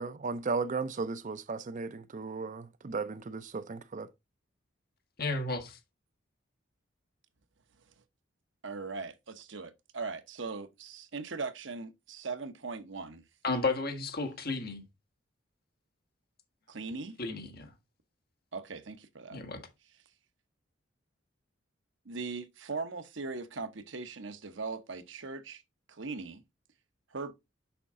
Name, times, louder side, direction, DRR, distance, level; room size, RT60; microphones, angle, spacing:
voice 1, 0.0-4.1, right 4 dB, 40° right, 0.5 m, -35 dB
voice 2, 5.2-5.8 13.4-14.8 17.2-17.7 19.3-19.6, left 3 dB, 50° left, 1.7 m, -33 dB
voice 3, 8.6-13.2 16.7-17.2 18.5-19.4 22.0-25.6 25.9-26.4 27.1-27.3, right 4 dB, 65° right, 0.9 m, -39 dB
6.9 x 5.7 x 3.7 m
head